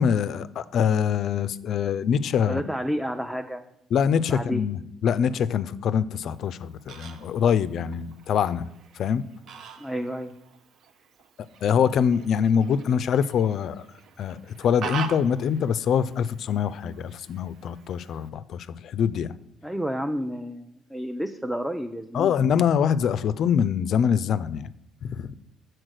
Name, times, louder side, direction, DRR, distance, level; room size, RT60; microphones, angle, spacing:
voice 1, 0.0-2.6 3.9-8.7 9.0-9.2 11.6-13.9 14.2-19.3 22.1-24.7 25.0-25.3, left 7 dB, 65° left, 15 dB, 0.3 m, -24 dB
voice 2, 2.4-3.6 4.3-4.6 9.8-10.3 19.6-22.3, equal, 5° right, 5 dB, 0.5 m, -30 dB
Fowl, 6.3-18.3, right 7 dB, 65° right, 0.6 m, -43 dB
6.2 x 4.4 x 6.4 m, 0.82 s
supercardioid pair, 75°, 0 cm